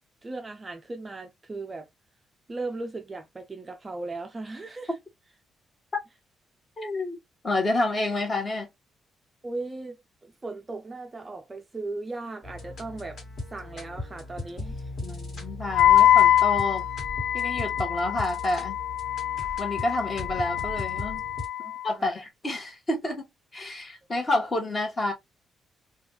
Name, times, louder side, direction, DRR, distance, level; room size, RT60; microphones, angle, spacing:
voice 1, 0.2-1.9 2.5-4.9 9.4-13.2 13.5-14.9 21.6-22.2, right 3 dB, 20° right, 0.4 m, -37 dB
voice 2, 6.8-7.2 7.4-8.7 15.0-16.9 17.3-18.8 19.6-21.2 21.8-23.3 23.5-25.1, left 2 dB, 25° left, 1.2 m, -29 dB
sound 1, 12.4-21.5, left 2 dB, 45° left, 1.7 m, -38 dB
Wind instrument woodwind instrument, 15.7-21.9, left 12 dB, 75° left, 0.5 m, -24 dB
4.0 x 2.3 x 2.9 m
cardioid pair, 145°, 0 cm